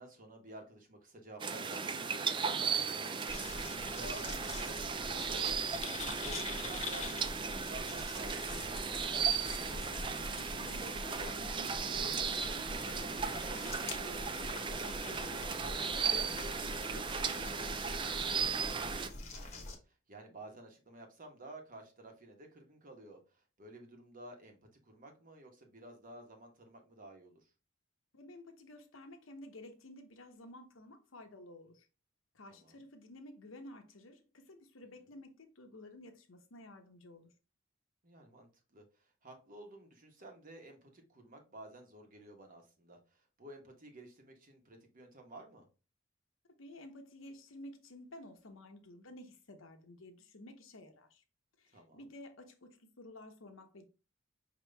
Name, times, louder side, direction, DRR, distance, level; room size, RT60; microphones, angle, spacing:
voice 1, 0.0-8.9 17.8-18.2 19.3-27.5 32.5-32.8 35.0-35.1 38.0-45.7 51.7-52.0, right 2 dB, 45° right, 1.1 m, -53 dB
sound 1, 1.4-19.1, right 6 dB, 25° right, 0.4 m, -36 dB
sound 2, 3.3-19.8, left 2 dB, 35° left, 1.0 m, -44 dB
voice 2, 9.7-18.8 28.1-31.9 32.3-37.3 46.6-51.2 51.6-53.9, left 1 dB, 85° left, 0.9 m, -53 dB
5.3 x 3.0 x 3.3 m
head